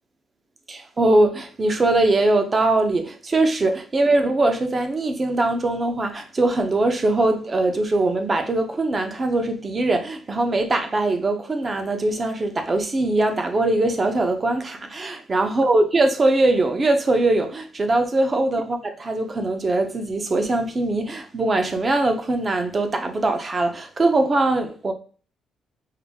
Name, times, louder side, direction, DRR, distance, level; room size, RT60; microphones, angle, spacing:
voice 1, 0.7-24.9, right 2 dB, 30° right, 0.8 m, -21 dB
5.6 x 2.1 x 3.5 m
cardioid pair, 90°, 0 cm